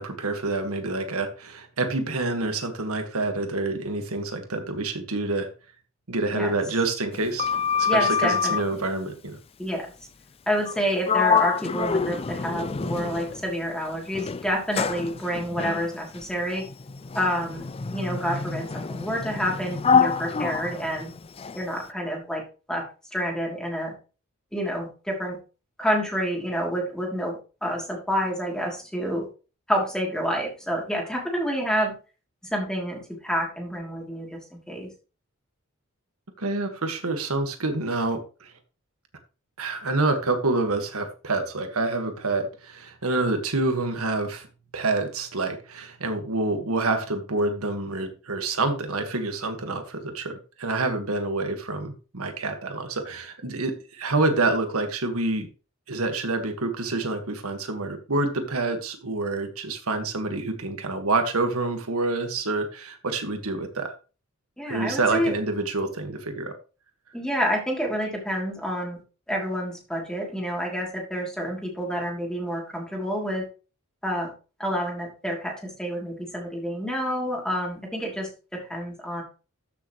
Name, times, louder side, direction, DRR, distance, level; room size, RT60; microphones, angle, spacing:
voice 1, 0.0-5.5 6.1-7.5 7.8-9.4 36.4-38.5 39.6-44.5 44.7-55.5 55.9-63.9 64.7-66.5, right 2 dB, 85° right, 6 dB, 1.7 m, -27 dB
Sliding door, 7.1-8.7 10.6-10.8 11.1-13.5 14.1-21.6, left 6 dB, 25° left, 0.4 m, -26 dB
voice 2, 7.9-8.9 9.6-9.9 10.5-16.6 17.1-21.1 21.5-22.4 22.7-22.8 23.1-23.9 24.5-25.4 25.8-29.3 29.7-31.9 32.5-34.9 64.6-65.4 67.1-69.0 69.3-73.5 74.0-74.3 74.6-79.2, equal, 5° left, -1 dB, 3.0 m, -28 dB
13.5 x 6.6 x 3.1 m, 0.34 s
head